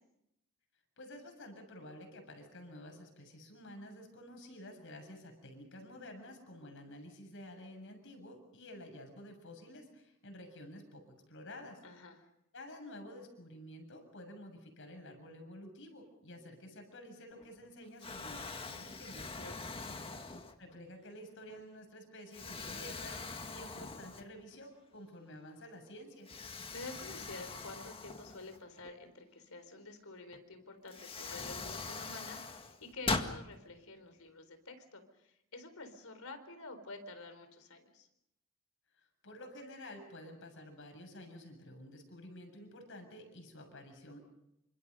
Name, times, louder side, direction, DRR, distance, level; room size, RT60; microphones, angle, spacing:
voice 1, 1.0-11.8 12.5-19.3 20.6-26.3 39.0-44.2, left 1 dB, 65° left, 5 dB, 7.3 m, -51 dB
voice 2, 11.8-12.3 19.2-19.8 26.5-38.1, left 3 dB, 80° left, 8 dB, 4.2 m, -49 dB
Explosion, 17.3-17.7 18.0-20.8 21.4-21.6 22.3-24.6 24.9-25.0 26.3-28.9 30.3-30.4 30.9-33.4, left 3 dB, 25° left, 1.9 m, -42 dB
28.5 x 26.0 x 5.5 m, 0.84 s
head